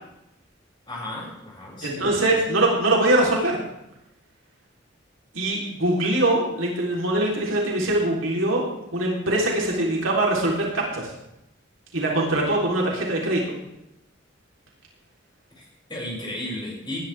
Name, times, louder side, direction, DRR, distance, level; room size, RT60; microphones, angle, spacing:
voice 1, 0.9-2.1 15.6-17.0, left 1 dB, 25° left, -5 dB, 7.0 m, -34 dB
voice 2, 1.8-3.6 5.3-11.1 11.9-13.6, right 1 dB, 85° right, -2 dB, 3.8 m, -23 dB
19.5 x 11.5 x 3.6 m, 0.84 s
head